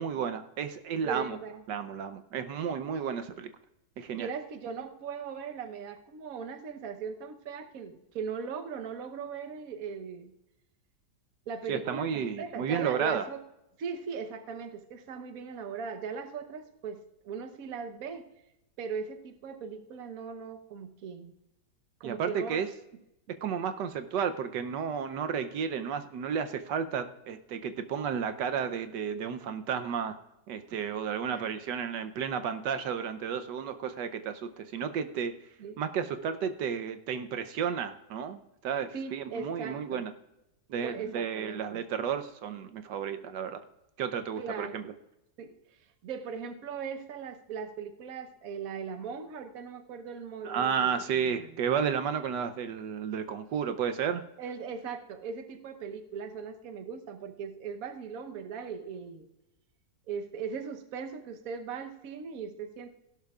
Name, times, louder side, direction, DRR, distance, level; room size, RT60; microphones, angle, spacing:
voice 1, 0.0-1.4 1.7-3.5 4.0-4.3 11.7-13.3 22.0-22.7 23.4-30.2 30.5-35.3 35.8-40.1 40.7-43.6 44.0-44.8 50.4-54.2, right 7 dB, 75° right, 9 dB, 1.3 m, -32 dB
voice 2, 1.0-1.6 4.1-10.3 11.5-13.4 13.8-18.2 18.8-21.3 22.0-22.6 31.3-31.4 35.6-35.8 38.9-40.0 40.7-41.8 44.4-44.8 45.4-45.5 46.0-51.5 54.4-59.3 60.1-62.9, right 6 dB, 55° right, 7 dB, 1.3 m, -39 dB
16.5 x 12.0 x 2.4 m, 0.89 s
omnidirectional pair, 1.9 m